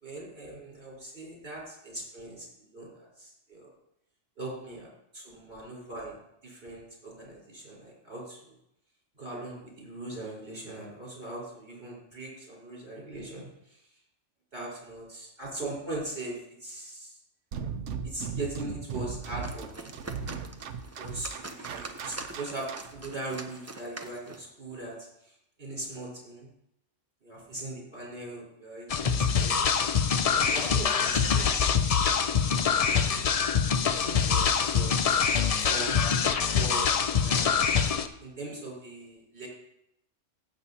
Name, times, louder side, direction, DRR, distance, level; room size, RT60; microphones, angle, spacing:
voice 1, 0.0-2.5 2.7-3.7 4.4-4.9 5.1-6.1 6.4-8.4 9.2-13.4 14.5-17.1 18.0-19.9 20.8-25.0 25.6-26.5 27.2-29.7 30.3-33.6 33.8-36.0 36.6-36.9 37.2-37.6 38.2-39.5, right 2 dB, 50° right, -4 dB, 4.4 m, -40 dB
sound 1, 17.5-23.0, right 6 dB, 70° right, 1.0 m, -37 dB
sound 2, 19.2-24.5, right 2 dB, 25° right, 0.3 m, -44 dB
sound 3, 28.9-38.1, left 6 dB, 60° left, 0.3 m, -25 dB
15.5 x 7.2 x 2.8 m, 0.79 s
omnidirectional pair, 1.3 m